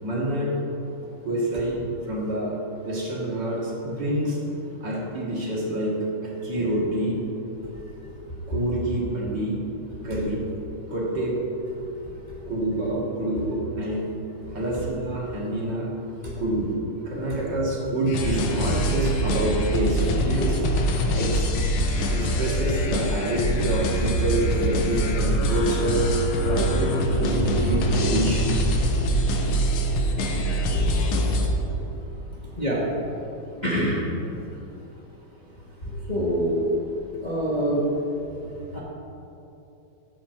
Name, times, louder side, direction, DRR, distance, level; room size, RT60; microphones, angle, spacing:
voice 1, 0.0-0.6 1.2-1.8 2.1-2.5 2.8-4.5 4.8-7.2 8.5-9.6 10.0-10.4 10.9-11.4 12.5-14.2 14.5-15.9 16.4-20.6 21.1-21.5 22.1-26.1 26.4-29.0, right 1 dB, 60° right, -4 dB, 2.2 m, -27 dB
sound 1, 18.1-31.5, equal, 80° left, 1.7 m, -24 dB
voice 2, 33.6-34.0 36.1-36.6 37.2-37.8 38.7-38.8, equal, 25° left, -6 dB, 1.0 m, -25 dB
10.0 x 7.0 x 4.3 m, 2.8 s
omnidirectional pair, 2.3 m